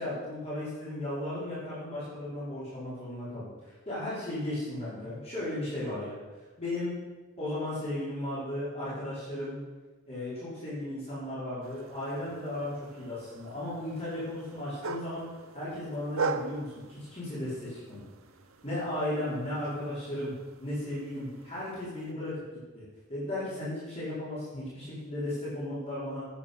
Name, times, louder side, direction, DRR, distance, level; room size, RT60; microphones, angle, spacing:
voice 1, 0.0-3.5 3.8-6.2 6.6-7.0 7.4-9.6 10.1-15.3 15.5-18.0 18.6-20.3 20.6-22.4 22.7-22.8 23.1-26.2, left 1 dB, 30° left, -10 dB, 4.7 m, -35 dB
sound 1, 11.6-22.1, right 4 dB, 75° right, 0.8 m, -41 dB
10.0 x 9.2 x 7.0 m, 1.3 s
head